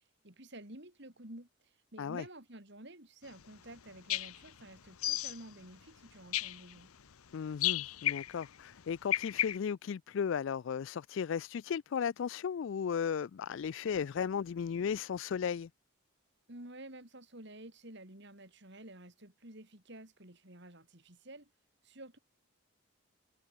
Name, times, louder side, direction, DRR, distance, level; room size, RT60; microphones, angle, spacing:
voice 1, 0.2-6.9 16.5-21.5 21.8-22.2, right 1 dB, 50° right, 3.7 m, -51 dB
sound 1, 3.8-3.9 4.1-4.5 4.9-5.5 6.3-6.7 7.6-8.5 9.0-9.6, left 14 dB, 80° left, 0.8 m, -33 dB
voice 2, 7.3-15.7, left 7 dB, 60° left, 0.3 m, -35 dB
head